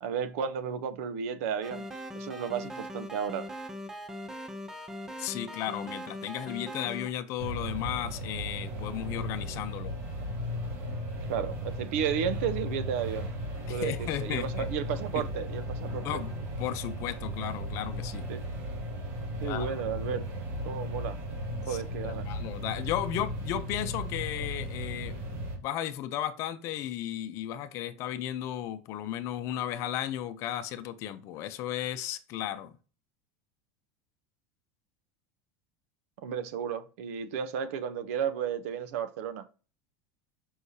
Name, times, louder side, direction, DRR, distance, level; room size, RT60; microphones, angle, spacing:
voice 1, 0.0-1.9 2.1-3.5 11.3-13.3 13.7-16.2 18.3-18.4 19.4-20.3 20.6-21.2 21.7-22.2 36.2-39.4, right 8 dB, 75° right, 0.8 m, -33 dB
sound 1, 1.6-7.1, equal, 5° right, 0.6 m, -40 dB
voice 2, 5.2-9.9 13.7-14.7 16.0-16.3 16.6-18.3 19.4-19.8 21.7-21.8 22.0-25.1 25.6-32.7, left 11 dB, 40° left, 0.6 m, -34 dB
sound 2, 7.4-25.6, equal, 35° right, 1.9 m, -36 dB
6.4 x 5.5 x 2.8 m
supercardioid pair, 170°, 8 cm